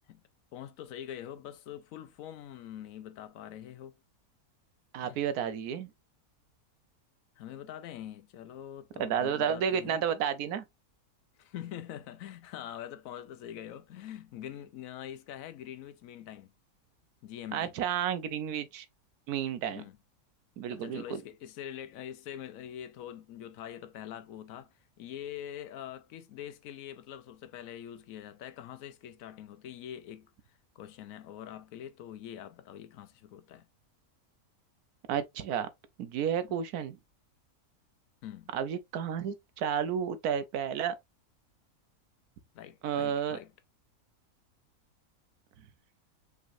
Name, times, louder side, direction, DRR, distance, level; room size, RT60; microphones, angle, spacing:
voice 1, 0.5-4.0 5.0-5.2 7.4-10.0 11.4-16.5 17.2-17.7 19.7-20.0 20.7-33.7 38.2-38.5 42.5-43.5, left 10 dB, 70° left, 1.0 m, -44 dB
voice 2, 4.9-5.9 9.0-10.6 17.5-18.9 19.3-19.8 20.6-21.2 35.1-35.7 36.0-37.0 38.5-41.0 42.8-43.4, right 8 dB, 85° right, 1.3 m, -31 dB
5.2 x 3.8 x 2.6 m
omnidirectional pair, 1.6 m